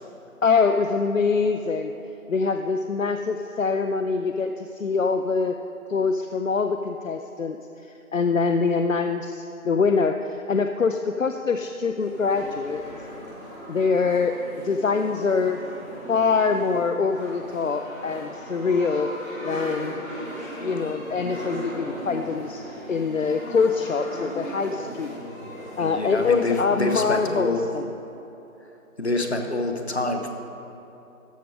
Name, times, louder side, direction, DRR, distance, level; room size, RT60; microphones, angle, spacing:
voice 1, 0.4-1.9 2.3-5.6 5.9-12.8 13.7-14.4 14.6-15.6 16.1-19.1 19.4-19.9 20.6-22.6 22.9-25.1 25.8-27.9, left 5 dB, 65° left, 6 dB, 0.5 m, -24 dB
sound 1, 11.9-27.4, equal, 10° left, 1.8 m, -38 dB
voice 2, 25.8-27.6 29.0-30.3, left 2 dB, 50° left, 4 dB, 0.9 m, -26 dB
13.5 x 6.4 x 4.8 m, 3.0 s
figure-of-eight pair, 175°, 43 cm